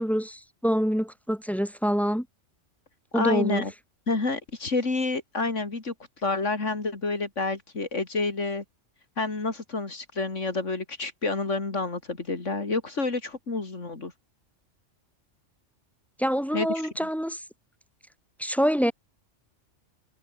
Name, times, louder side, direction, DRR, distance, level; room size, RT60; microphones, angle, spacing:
voice 1, 0.0-2.3 3.1-3.6 16.2-17.4 18.4-18.9, equal, ahead, 2.1 m, -26 dB
voice 2, 3.1-3.7 4.1-5.9 6.2-8.6 9.2-14.1 16.5-16.7, left 3 dB, 75° left, 3.4 m, -28 dB
omnidirectional pair, 1.3 m